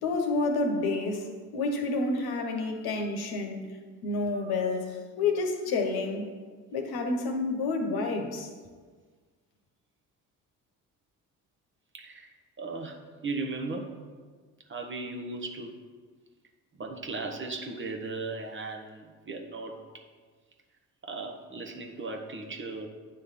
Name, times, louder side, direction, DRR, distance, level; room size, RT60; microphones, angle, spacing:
voice 1, 0.0-3.6 4.0-6.3 6.7-8.5, left 3 dB, 55° left, 1.2 m, -29 dB
voice 2, 11.9-12.3 12.6-13.9 14.7-15.7 16.8-19.8 21.0-22.9, right 3 dB, 25° right, 1.0 m, -37 dB
8.6 x 3.3 x 5.8 m
hypercardioid pair, 55°, 44 cm